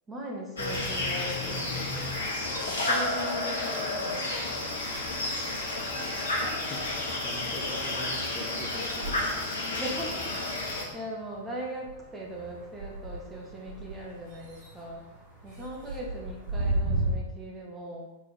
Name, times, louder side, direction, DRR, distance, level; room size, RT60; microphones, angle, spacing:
voice 1, 0.1-2.1 2.7-4.3 9.6-10.3 10.5-15.0 15.4-18.1, right 1 dB, 15° right, -2 dB, 1.9 m, -39 dB
sound 1, 0.6-10.9, left 2 dB, 70° left, 1.4 m, -31 dB
sound 2, 4.1-5.1 5.4-17.1, right 2 dB, 50° right, 2.8 m, -38 dB
voice 2, 6.5-6.8 7.2-9.7 15.8-16.0, equal, 5° left, -4 dB, 1.7 m, -43 dB
7.8 x 4.4 x 5.1 m, 0.98 s
figure-of-eight pair, 90°, 0 cm